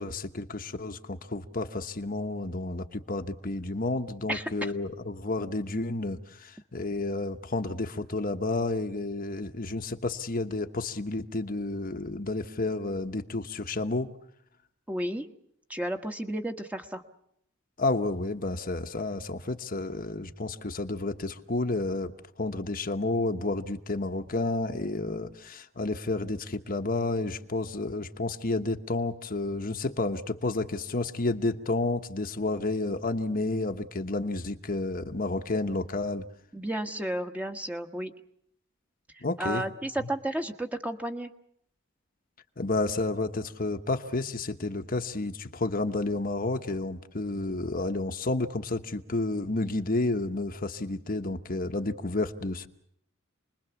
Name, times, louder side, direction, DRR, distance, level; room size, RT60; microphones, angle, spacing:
voice 1, 0.0-14.1 17.8-22.1 22.4-36.3 39.2-39.6 40.0-40.1 42.6-52.7, left 2 dB, 45° left, 6 dB, 1.1 m, -31 dB
voice 2, 14.9-15.3 15.7-17.0 36.5-38.1 39.2-41.3, right 1 dB, 5° right, 5 dB, 1.3 m, -32 dB
28.5 x 21.0 x 7.1 m, 0.72 s
head